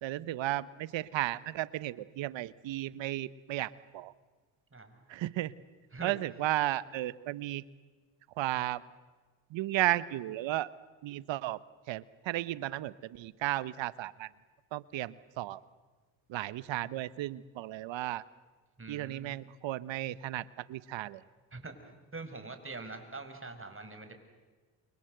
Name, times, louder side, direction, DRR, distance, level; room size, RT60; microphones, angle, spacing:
voice 1, 0.0-4.1 5.1-5.5 6.0-7.6 8.4-8.8 9.5-10.7 11.0-11.6 11.9-14.3 14.7-15.6 16.3-18.2 18.9-21.2, right 15 dB, 70° right, 18 dB, 1.1 m, -34 dB
voice 2, 4.7-5.0 5.9-6.1 18.8-19.4 21.5-21.7 22.1-24.2, right 3 dB, 25° right, 7 dB, 6.0 m, -44 dB
29.0 x 25.0 x 8.0 m, 1.3 s
supercardioid pair, 60°, 46 cm